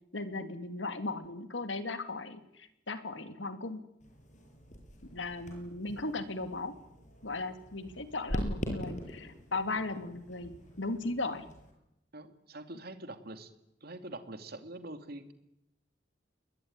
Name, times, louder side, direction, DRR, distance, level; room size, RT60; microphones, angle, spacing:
voice 1, 0.1-3.8 5.1-6.7 7.2-10.5 10.8-11.4, left 2 dB, 80° left, 9 dB, 2.7 m, -37 dB
sound 1, 4.0-11.7, equal, 45° left, 7.6 m, -42 dB
voice 2, 12.1-13.5 13.8-15.3, right 2 dB, 55° right, 8 dB, 2.7 m, -44 dB
28.5 x 21.5 x 9.7 m, 0.86 s
head